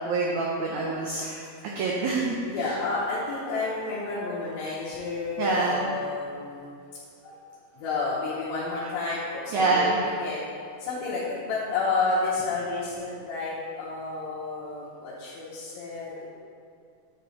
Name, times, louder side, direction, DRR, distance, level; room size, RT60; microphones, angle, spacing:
voice 1, 0.1-1.5 1.8-2.7 5.4-5.9 9.5-10.0, right 3 dB, 85° right, -3 dB, 1.6 m, -26 dB
voice 2, 2.5-6.7 7.2-7.4 7.7-10.4 10.8-16.3, left 3 dB, 80° left, -9 dB, 2.7 m, -30 dB
8.7 x 4.2 x 4.4 m, 2.3 s
omnidirectional pair, 4.2 m